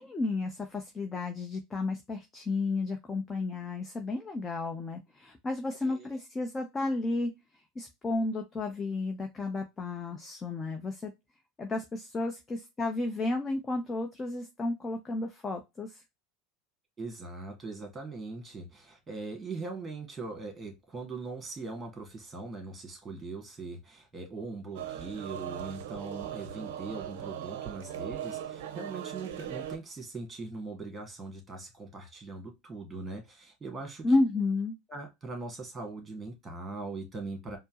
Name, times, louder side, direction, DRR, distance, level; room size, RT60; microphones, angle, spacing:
voice 1, 0.0-7.3 7.8-11.1 11.6-16.0 34.0-34.7, left 2 dB, 20° left, 0.7 m, -32 dB
voice 2, 5.8-6.2 17.0-34.1 34.9-37.6, right 3 dB, 20° right, 1.7 m, -41 dB
sound 1, 24.7-29.8, right 10 dB, 65° right, 0.5 m, -39 dB
4.3 x 2.0 x 2.8 m
hypercardioid pair, 80°, 0 cm